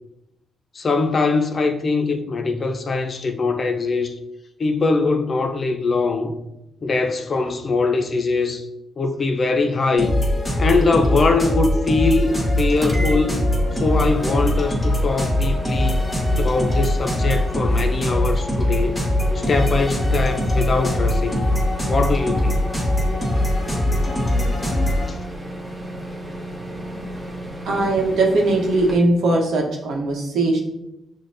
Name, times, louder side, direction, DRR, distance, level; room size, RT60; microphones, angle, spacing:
voice 1, 0.7-4.1 4.6-6.4 6.8-8.6 9.0-10.2 10.6-13.4 13.7-16.0 16.4-19.0 19.3-21.4 21.8-22.6 23.9-25.2 26.6-27.2 30.5-30.6, left 3 dB, 45° left, 0.5 m, -22 dB
sound 1, 10.0-25.1, left 1 dB, 15° left, 1.3 m, -21 dB
sound 2, 12.8-29.0, right 1 dB, 15° right, 0.9 m, -34 dB
voice 2, 27.7-30.6, right 2 dB, 75° right, 0.9 m, -19 dB
6.2 x 2.2 x 2.6 m
supercardioid pair, 60°, 0 cm